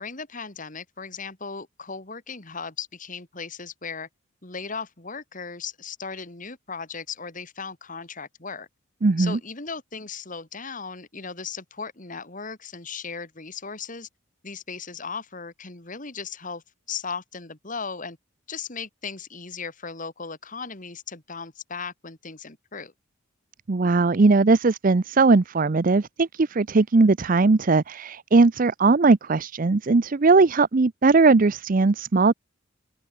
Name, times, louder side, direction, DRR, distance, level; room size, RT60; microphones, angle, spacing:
voice 1, 0.0-4.1 4.4-8.7 9.2-14.1 14.4-16.6 16.9-18.2 18.5-22.9, left 5 dB, 40° left, 2.6 m, -37 dB
voice 2, 9.0-9.4 23.7-32.3, right 3 dB, 45° right, 0.5 m, -19 dB
open air
head